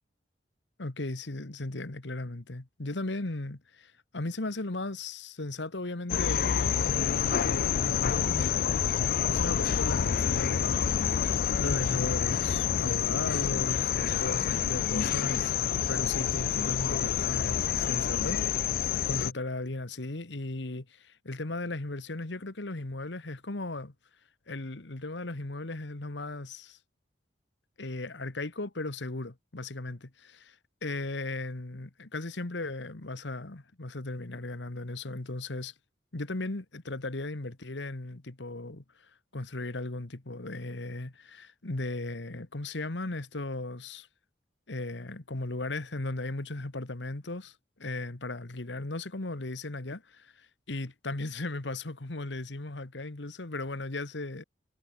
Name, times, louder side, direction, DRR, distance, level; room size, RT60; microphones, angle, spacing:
voice 1, 0.8-8.7 9.2-10.9 11.3-15.6 15.9-18.6 19.1-23.9 24.5-26.8 27.8-30.4 30.8-35.7 36.1-38.8 39.3-44.1 44.7-54.4, left 2 dB, 75° left, 1.5 m, -36 dB
sound 1, 6.1-19.3, left 8 dB, 50° left, 0.3 m, -28 dB
head